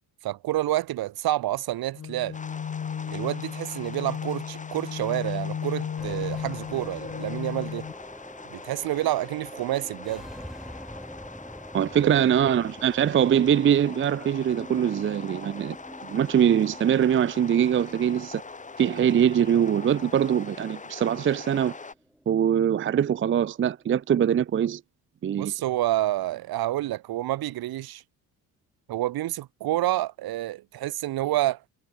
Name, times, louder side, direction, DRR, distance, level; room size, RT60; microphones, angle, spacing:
voice 1, 0.2-2.4 3.1-7.9 8.5-10.3 12.0-12.2 25.4-28.0 28.9-31.6, right 15 dB, 75° right, 1.7 m, -28 dB
sound 1, 1.9-7.9, left 8 dB, 40° left, 2.2 m, -34 dB
sound 2, 2.3-21.9, left 4 dB, 20° left, 1.8 m, -43 dB
sound 3, 6.0-24.5, equal, ahead, 4.0 m, -46 dB
voice 2, 11.7-15.8 16.0-18.4 18.8-21.7 22.3-24.8 25.2-25.5, right 9 dB, 35° right, 0.6 m, -23 dB
cardioid pair, 105°, 37 cm